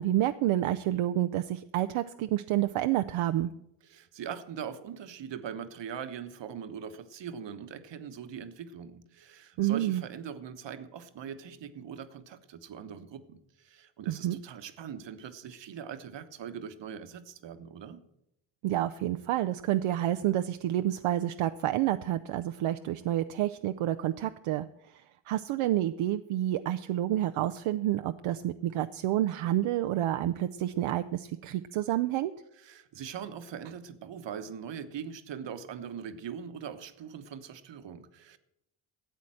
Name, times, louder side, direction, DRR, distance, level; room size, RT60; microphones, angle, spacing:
voice 1, 0.0-3.5 9.6-10.0 14.1-14.4 18.6-32.3, right 13 dB, 80° right, 8 dB, 0.6 m, -29 dB
voice 2, 3.8-18.0 32.6-38.4, right 8 dB, 60° right, 10 dB, 1.2 m, -41 dB
13.0 x 8.3 x 7.7 m, 0.84 s
cardioid pair, 85°, 49 cm